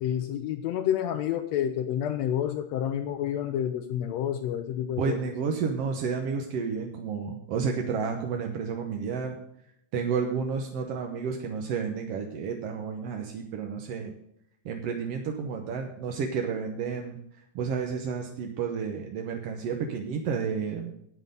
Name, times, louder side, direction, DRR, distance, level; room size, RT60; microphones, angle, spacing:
voice 1, 0.0-5.2, left 10 dB, 90° left, 7 dB, 1.5 m, -29 dB
voice 2, 5.0-9.4 9.9-14.1 14.6-17.2 17.5-20.9, right 6 dB, 65° right, 3 dB, 1.6 m, -31 dB
9.5 x 8.9 x 5.4 m, 0.76 s
omnidirectional pair, 3.8 m